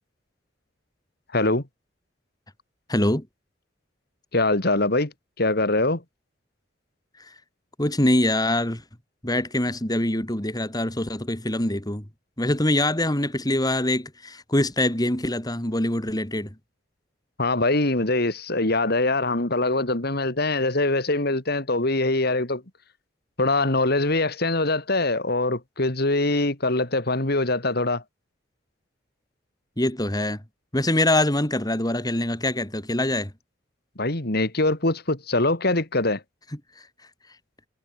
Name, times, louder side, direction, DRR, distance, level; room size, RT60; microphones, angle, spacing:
voice 1, 1.3-1.6 4.3-6.0 17.4-22.6 23.4-28.0 34.0-36.2, left 2 dB, 55° left, 2.9 m, -23 dB
voice 2, 2.9-3.3 7.2-7.3 7.8-8.8 9.2-12.1 12.4-16.5 29.8-30.4 30.7-33.3 36.8-36.9, left 1 dB, 20° left, 3.0 m, -24 dB
head